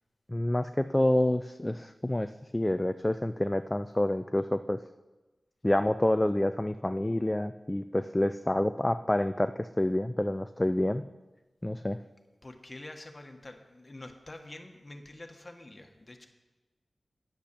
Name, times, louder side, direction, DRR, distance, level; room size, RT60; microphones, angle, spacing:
voice 1, 0.3-4.8 5.6-11.0 11.6-12.0, left 1 dB, 15° left, 10 dB, 0.3 m, -28 dB
voice 2, 12.4-16.3, left 2 dB, 30° left, 5 dB, 1.3 m, -46 dB
10.0 x 8.3 x 6.8 m, 1.2 s
wide cardioid pair, 105°, 0 cm